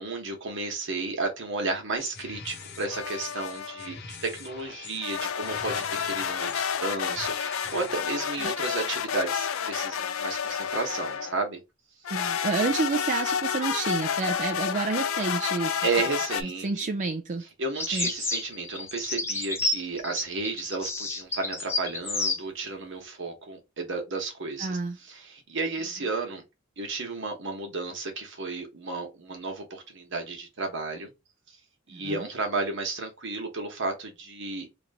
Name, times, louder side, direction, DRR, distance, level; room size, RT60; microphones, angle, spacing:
voice 1, 0.0-11.6 15.8-16.7 17.6-26.4 26.8-31.1 31.9-34.7, right 3 dB, 60° right, 1.2 m, -33 dB
sound 1, 2.0-8.5, left 5 dB, 55° left, 0.8 m, -44 dB
sound 2, 2.9-3.9 5.0-11.4 12.1-16.4, left 8 dB, 80° left, 0.4 m, -30 dB
voice 2, 12.1-15.8 16.6-17.5 17.9-18.1 24.6-25.0 31.9-32.3, right 4 dB, 40° right, 0.4 m, -29 dB
sound 3, 17.7-22.4, left 2 dB, 15° left, 0.6 m, -30 dB
2.9 x 2.6 x 4.1 m
head